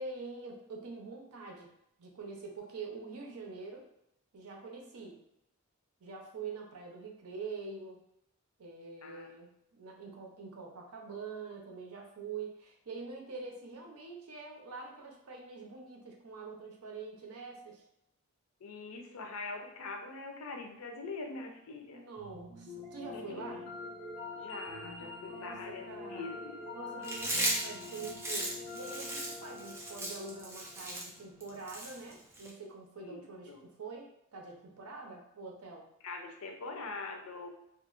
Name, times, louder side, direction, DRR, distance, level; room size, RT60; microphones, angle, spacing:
voice 1, 0.0-1.7 2.0-3.8 4.3-5.2 6.0-8.0 8.6-17.8 21.9-23.6 25.3-26.3 26.7-35.9, right 4 dB, 85° right, 0 dB, 0.6 m, -45 dB
voice 2, 18.6-22.1 23.1-23.6 24.3-26.6 33.0-33.6 36.0-37.5, left 3 dB, 80° left, 3 dB, 0.5 m, -43 dB
sound 1, 22.2-31.3, left 3 dB, 25° left, 0.8 m, -45 dB
Chewing mastication, 27.0-32.5, right 1 dB, 10° right, 0.3 m, -36 dB
2.9 x 2.5 x 2.4 m, 0.80 s
head